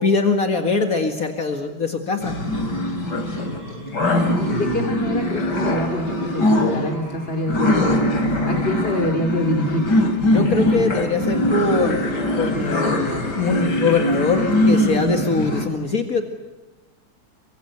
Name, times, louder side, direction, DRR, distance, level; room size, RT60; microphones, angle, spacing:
voice 1, 0.0-2.3 10.3-16.2, left 4 dB, 55° left, 5 dB, 2.4 m, -22 dB
sound 1, 2.2-15.7, left 1 dB, 85° left, 4.2 m, -22 dB
voice 2, 4.1-8.0 8.4-9.9, left 1 dB, 35° left, 4 dB, 3.4 m, -25 dB
29.5 x 25.0 x 8.1 m, 1.1 s
omnidirectional pair, 1.8 m